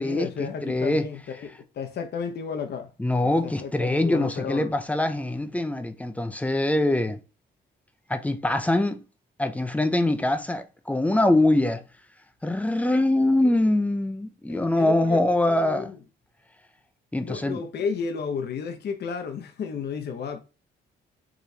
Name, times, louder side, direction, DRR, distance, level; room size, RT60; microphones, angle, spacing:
voice 1, 0.0-2.9 3.4-4.7 13.5-13.6 14.5-16.0 17.2-20.4, left 6 dB, 55° left, 0.7 m, -33 dB
voice 2, 0.6-1.1 3.0-7.2 8.1-9.0 9.4-11.8 12.4-15.9 17.1-17.6, left 1 dB, 5° left, 0.5 m, -23 dB
4.8 x 3.0 x 2.7 m
cardioid pair, 90°, 20 cm